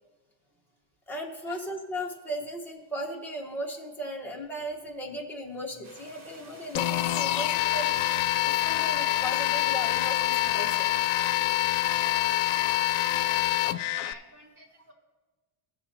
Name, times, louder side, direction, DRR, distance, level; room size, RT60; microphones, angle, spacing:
voice 1, 1.1-7.9 8.4-10.9, equal, 5° left, -2 dB, 1.2 m, -36 dB
sound 1, 5.8-13.8, right 2 dB, 55° right, 2.6 m, -52 dB
sound 2, 6.7-14.1, left 15 dB, 80° left, 0.6 m, -26 dB
voice 2, 12.4-14.9, right 1 dB, 35° right, -4 dB, 3.5 m, -50 dB
17.0 x 6.9 x 2.9 m, 1.2 s
cardioid pair, 155°, 49 cm